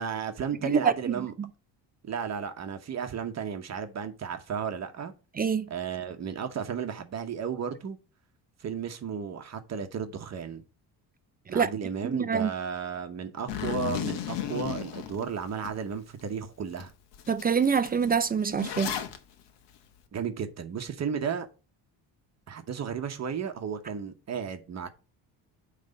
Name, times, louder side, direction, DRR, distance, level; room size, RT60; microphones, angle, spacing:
voice 1, 0.0-1.3 2.0-5.1 5.7-8.0 8.6-10.6 11.5-16.9 20.1-21.5 22.5-24.9, right 7 dB, 40° right, 1.0 m, -34 dB
voice 2, 0.6-1.1 5.4-5.7 11.5-11.7 12.0-12.5 17.3-18.9, right 6 dB, 25° right, 0.4 m, -25 dB
Zipper (clothing), 13.5-15.7 16.2-16.3 16.8-16.9 17.1-19.2, left 10 dB, 80° left, 1.2 m, -34 dB
9.4 x 3.3 x 5.2 m
cardioid pair, 135°, 41 cm